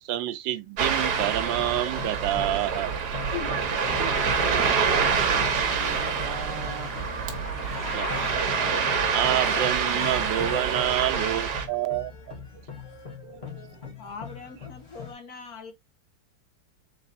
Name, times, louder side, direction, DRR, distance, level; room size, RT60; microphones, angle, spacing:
voice 1, 0.0-2.9 7.9-8.3 9.1-12.1 13.2-13.8, right 13 dB, 85° right, 1.3 m, -28 dB
Ocean, 0.8-11.7, right 6 dB, 65° right, 1.4 m, -26 dB
sound 1, 0.9-15.1, left 5 dB, 35° left, 2.0 m, -41 dB
sound 2, 3.3-10.6, left 9 dB, 80° left, 1.4 m, -39 dB
voice 2, 3.5-7.1, right 4 dB, 35° right, 0.8 m, -39 dB
voice 3, 14.0-15.7, left 4 dB, 55° left, 1.5 m, -42 dB
4.1 x 3.9 x 2.5 m
omnidirectional pair, 2.0 m